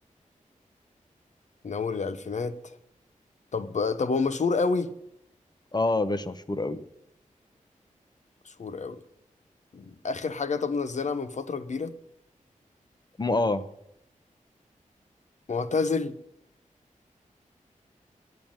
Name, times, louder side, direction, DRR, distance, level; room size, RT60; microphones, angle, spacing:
voice 1, 1.6-2.6 3.5-4.9 8.5-9.0 9.7-11.9 15.5-16.1, left 4 dB, 60° left, 0.9 m, -28 dB
voice 2, 5.7-6.8 13.2-13.6, left 2 dB, 30° left, 0.9 m, -26 dB
9.5 x 8.9 x 8.9 m
wide cardioid pair, 80°, 14 cm